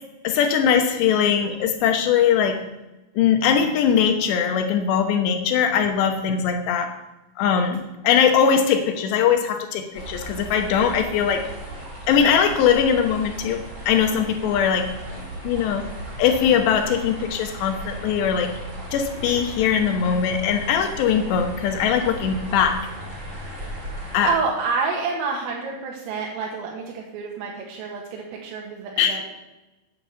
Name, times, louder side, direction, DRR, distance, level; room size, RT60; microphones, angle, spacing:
voice 1, 0.2-2.6 3.2-6.9 7.4-11.4 12.1-13.6 13.9-14.9 15.4-15.8 16.2-18.5 18.9-22.8 24.1-24.3 29.0-29.2, left 7 dB, 75° left, 5 dB, 2.8 m, -21 dB
sound 1, 9.9-24.3, right 1 dB, 25° right, 3.5 m, -36 dB
voice 2, 24.3-29.3, right 4 dB, 80° right, -1 dB, 4.1 m, -28 dB
9.6 x 8.9 x 8.1 m, 1.0 s
omnidirectional pair, 5.9 m